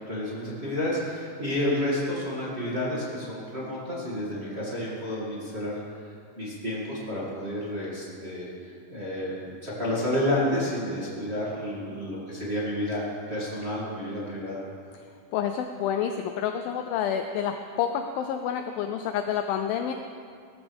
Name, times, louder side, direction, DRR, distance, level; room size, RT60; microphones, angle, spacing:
voice 1, 0.0-5.8 6.4-13.0 13.3-14.6, left 1 dB, 20° right, -7 dB, 1.8 m, -30 dB
voice 2, 15.3-19.9, left 8 dB, 90° left, 6 dB, 2.0 m, -28 dB
18.5 x 13.5 x 3.6 m, 2.3 s
omnidirectional pair, 4.8 m